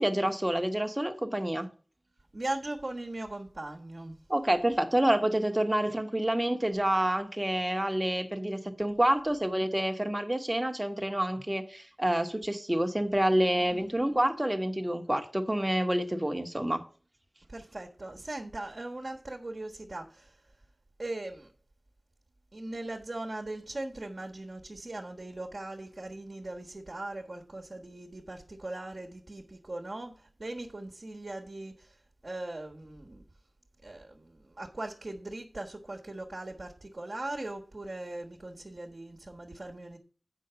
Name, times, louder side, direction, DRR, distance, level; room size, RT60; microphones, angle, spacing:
voice 1, 0.0-1.7 4.3-16.8, right 1 dB, 20° right, 1.5 m, -28 dB
voice 2, 2.3-4.1 17.5-20.0 21.0-21.5 22.5-30.1 30.4-31.7 32.2-33.2 33.8-34.1 34.6-40.0, right 2 dB, 55° right, 1.4 m, -39 dB
8.3 x 5.4 x 6.9 m
wide cardioid pair, 50°, 0 cm